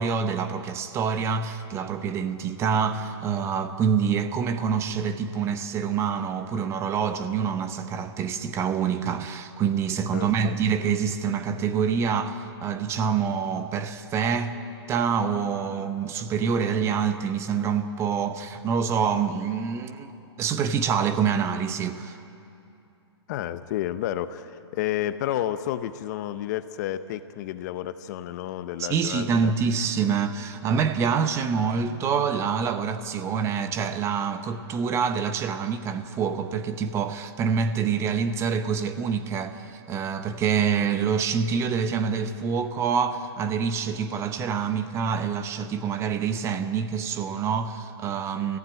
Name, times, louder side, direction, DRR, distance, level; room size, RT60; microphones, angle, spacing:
voice 1, 0.0-14.6 14.9-20.1 20.4-22.2 28.8-48.6, right 6 dB, 20° right, 0.8 m, -26 dB
voice 2, 10.1-10.5 23.3-29.5, left 12 dB, 40° left, 0.7 m, -31 dB
19.5 x 15.0 x 9.0 m
hypercardioid pair, 145°, 14 cm